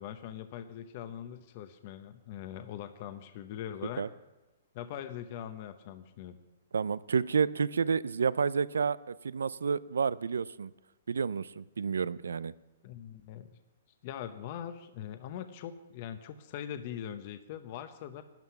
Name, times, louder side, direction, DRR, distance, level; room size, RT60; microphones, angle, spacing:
voice 1, 0.0-4.1 4.7-6.4 12.8-13.6 14.0-18.2, left 10 dB, 45° left, 9 dB, 0.8 m, -42 dB
voice 2, 6.7-10.7 11.1-12.5, right 5 dB, 90° right, 19 dB, 0.4 m, -30 dB
12.0 x 9.4 x 5.8 m, 1.1 s
hypercardioid pair, 145°, 0 cm